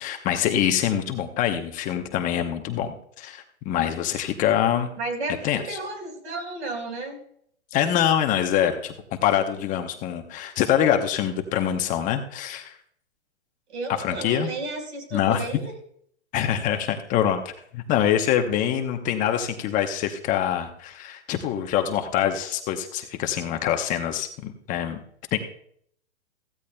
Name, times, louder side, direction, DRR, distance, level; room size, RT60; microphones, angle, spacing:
voice 1, 0.0-4.9 5.4-5.8 7.7-8.9 9.2-12.7 14.0-14.5 15.1-15.4 16.3-25.0 25.3-25.4, left 10 dB, 25° left, 5 dB, 0.9 m, -25 dB
voice 2, 5.0-7.2 13.7-15.7, right 3 dB, 70° right, 3 dB, 4.6 m, -33 dB
16.0 x 15.5 x 2.2 m, 0.65 s
hypercardioid pair, 135°, 35 cm